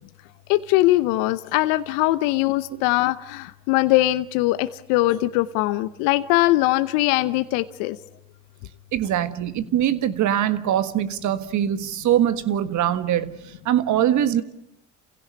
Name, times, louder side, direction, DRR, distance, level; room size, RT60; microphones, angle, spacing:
voice 1, 0.5-8.0, left 17 dB, 75° left, 13 dB, 0.8 m, -21 dB
voice 2, 8.9-14.4, right 11 dB, 60° right, 13 dB, 1.7 m, -22 dB
28.5 x 16.5 x 9.8 m, 0.84 s
hypercardioid pair, 70°, 33 cm